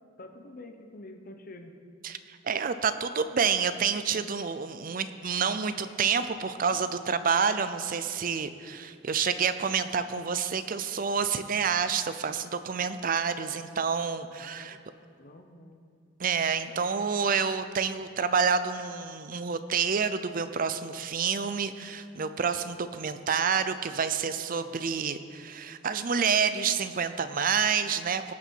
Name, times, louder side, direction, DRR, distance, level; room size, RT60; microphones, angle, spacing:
voice 1, 0.2-1.7 14.4-14.8 15.2-15.8, left 2 dB, 45° left, 6 dB, 0.9 m, -47 dB
voice 2, 2.0-14.8 16.2-28.3, right 6 dB, 45° right, 11 dB, 0.5 m, -28 dB
18.5 x 6.9 x 4.6 m, 2.2 s
head